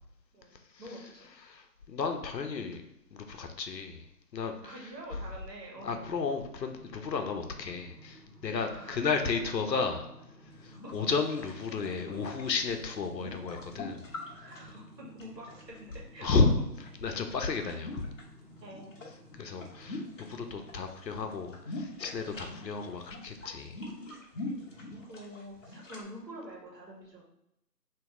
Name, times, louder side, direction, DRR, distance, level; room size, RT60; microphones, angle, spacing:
voice 1, 0.3-1.3 4.6-6.0 8.4-9.3 10.7-11.1 14.3-16.3 18.6-18.9 22.3-22.5 24.7-27.2, right 1 dB, 90° right, -2 dB, 1.3 m, -47 dB
voice 2, 1.4-2.8 3.1-4.1 4.3-4.7 5.8-10.1 10.6-14.1 16.2-16.5 17.0-18.1 19.4-20.0 20.3-23.8, left 4 dB, 85° left, 6 dB, 0.7 m, -32 dB
sound 1, 5.7-20.8, equal, 25° right, 0.9 m, -54 dB
sound 2, 10.5-16.0 16.4-18.2 18.5-20.8 21.0-26.0, left 2 dB, 50° left, 0.8 m, -44 dB
3.0 x 2.8 x 3.5 m, 0.84 s
figure-of-eight pair, 165°, 49 cm